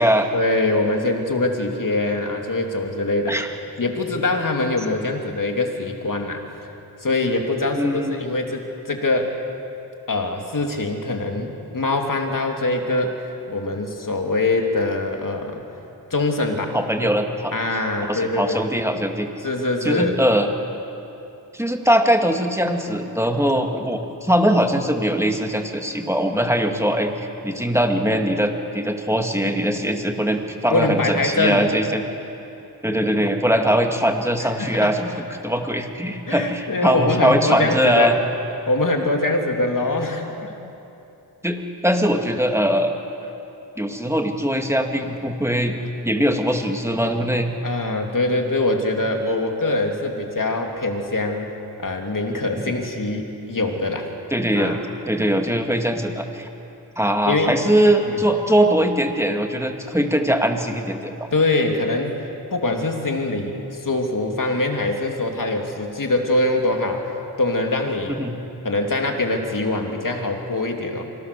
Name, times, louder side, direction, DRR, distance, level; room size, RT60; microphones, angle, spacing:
voice 1, 0.3-3.3 3.8-6.4 7.0-9.3 10.1-15.6 16.1-16.8 17.0-17.1 17.5-18.6 19.4-20.1 30.7-31.6 34.6-34.9 36.3-38.1 38.7-40.5 47.6-51.5 51.8-54.1 54.5-54.8 57.3-57.6 58.0-58.2 61.3-62.2 62.5-67.1 67.4-68.2 68.6-71.0, left 2 dB, 50° left, 2 dB, 2.8 m, -23 dB
voice 2, 7.8-8.3 16.7-17.5 18.1-19.3 19.8-20.5 21.5-32.0 32.8-38.2 41.4-42.9 43.8-45.7 46.0-47.5 52.5-52.7 54.3-54.8 55.0-56.5 57.0-61.3 68.1-68.4, equal, 5° right, 3 dB, 2.3 m, -21 dB
25.5 x 19.0 x 6.9 m, 2.8 s
wide cardioid pair, 60°, 40 cm